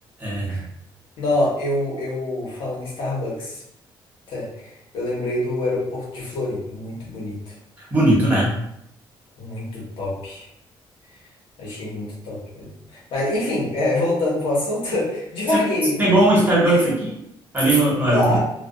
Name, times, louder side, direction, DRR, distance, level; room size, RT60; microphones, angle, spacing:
voice 1, 0.2-0.6 7.8-8.6 15.5-15.6 16.0-17.1 17.5-18.4, right 1 dB, 20° right, -6 dB, 1.0 m, -18 dB
voice 2, 1.2-3.6 4.3-7.4 9.4-10.4 11.6-16.0 16.7-17.0 18.1-18.4, left 1 dB, 80° left, -4 dB, 0.9 m, -25 dB
2.4 x 2.3 x 2.2 m, 0.76 s
cardioid pair, 120°, 9 cm